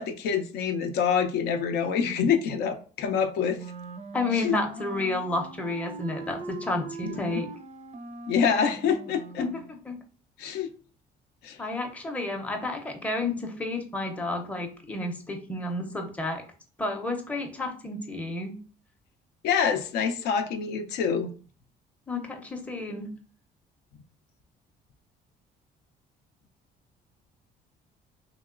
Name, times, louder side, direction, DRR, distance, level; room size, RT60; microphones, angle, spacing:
voice 1, 0.0-3.6 4.3-4.5 7.0-7.4 8.3-9.4 10.4-10.7 11.4-11.6 19.4-21.3, left 7 dB, 80° left, 6 dB, 0.5 m, -26 dB
Wind instrument woodwind instrument, 3.5-9.7, right 2 dB, 40° right, 0.4 m, -41 dB
voice 2, 4.1-7.5 9.4-9.9 11.6-16.4 16.8-18.6 22.1-23.1, left 2 dB, 10° left, 2 dB, 0.6 m, -31 dB
3.0 x 2.8 x 2.4 m, 0.39 s
cardioid pair, 110°, 17 cm